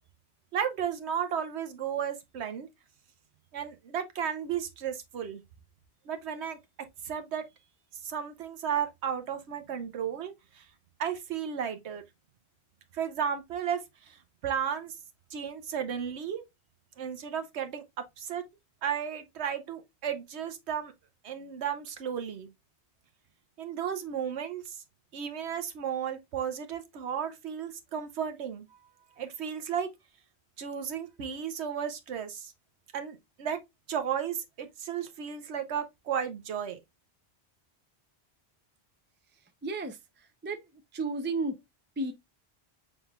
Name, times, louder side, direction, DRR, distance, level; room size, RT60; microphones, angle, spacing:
voice 1, 0.5-2.7 3.5-5.4 6.1-6.6 7.0-7.5 8.0-10.6 11.0-12.0 12.9-13.8 14.1-14.9 15.3-16.4 17.0-17.8 18.2-18.4 18.8-20.9 21.2-22.5 23.6-24.8 25.1-28.7 29.2-29.9 30.6-32.5 32.9-33.6 33.9-36.8, right 8 dB, 85° right, 1.0 m, -34 dB
voice 2, 39.6-40.0 40.4-40.6 40.9-41.6 42.0-42.1, right 2 dB, 20° right, 0.3 m, -32 dB
5.8 x 3.7 x 2.3 m
omnidirectional pair, 1.1 m